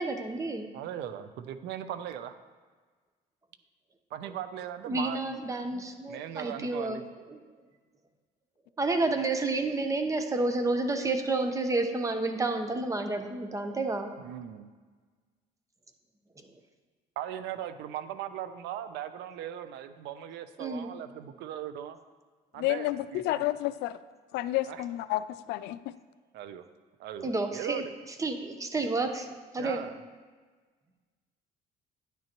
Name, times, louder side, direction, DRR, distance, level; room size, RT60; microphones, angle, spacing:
voice 1, 0.0-0.7 4.9-7.0 7.3-7.4 8.8-14.1 20.6-20.9 27.2-27.8 28.2-29.8, right 2 dB, 20° right, 6 dB, 0.8 m, -30 dB
voice 2, 0.7-2.3 4.1-5.3 6.1-7.0 14.2-14.7 17.2-22.0 22.5-23.4 24.7-24.8 26.3-26.6 27.0-27.9 29.6-30.0, right 10 dB, 85° right, 11 dB, 0.6 m, -39 dB
voice 3, 22.6-24.0 24.3-25.9, left 15 dB, 85° left, 14 dB, 0.4 m, -30 dB
10.0 x 9.2 x 3.0 m, 1.4 s
cardioid pair, 110°, 17 cm